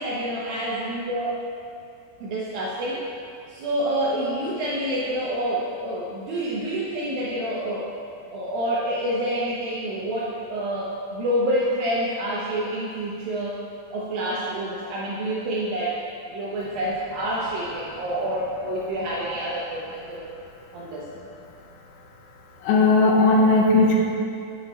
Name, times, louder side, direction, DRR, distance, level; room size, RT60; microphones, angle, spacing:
voice 1, 0.0-1.4 2.2-3.0 3.5-7.9 8.3-13.6 13.9-16.0 16.3-20.3 20.7-21.1, right 1 dB, 85° right, -6 dB, 2.0 m, -27 dB
voice 2, 22.6-24.0, left 3 dB, 70° left, -2 dB, 2.6 m, -17 dB
11.0 x 8.9 x 3.1 m, 2.5 s
omnidirectional pair, 5.4 m